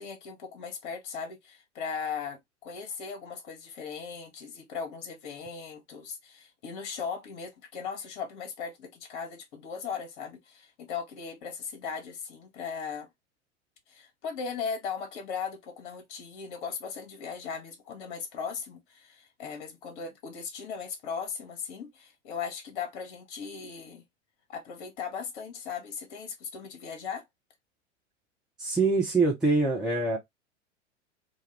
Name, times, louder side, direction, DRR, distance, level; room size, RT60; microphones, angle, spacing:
voice 1, 0.0-13.1 13.9-24.0 24.5-27.2, left 6 dB, 45° left, 0.9 m, -38 dB
voice 2, 28.6-30.2, right 3 dB, ahead, 0.4 m, -24 dB
2.3 x 2.2 x 3.1 m
figure-of-eight pair, 90°, 35 cm